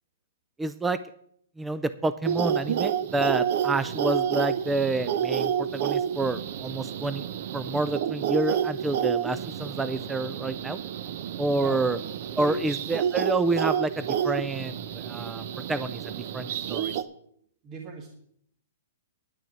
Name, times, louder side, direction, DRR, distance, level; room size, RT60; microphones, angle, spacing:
voice 1, 0.6-1.0 1.6-7.3 7.5-10.8 11.4-12.0 12.4-16.9, right 2 dB, 5° right, 13 dB, 0.4 m, -29 dB
sound 1, 2.2-17.0, right 9 dB, 50° right, 0.7 m, -29 dB
voice 2, 11.5-11.9 12.3-12.6 17.6-18.1, right 2 dB, 25° right, 2 dB, 1.5 m, -37 dB
10.5 x 6.6 x 8.5 m, 0.68 s
hypercardioid pair, 155°, 0 cm